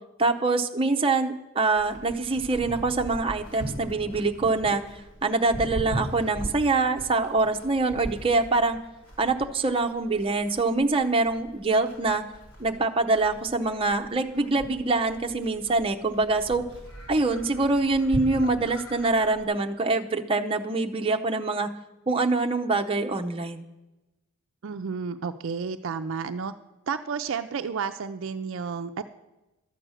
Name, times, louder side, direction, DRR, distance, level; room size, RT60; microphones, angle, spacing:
voice 1, 0.2-4.8 5.2-8.8 9.2-12.2 12.6-16.6 17.1-21.7 22.1-23.7, right 3 dB, 25° right, 3 dB, 0.7 m, -24 dB
Livestock farm animals working animals, 1.8-19.4, right 1 dB, 85° left, 3.3 m, -40 dB
voice 2, 24.6-26.5 26.9-29.0, right 5 dB, 60° right, 9 dB, 0.4 m, -31 dB
12.5 x 7.7 x 6.3 m, 1.0 s
head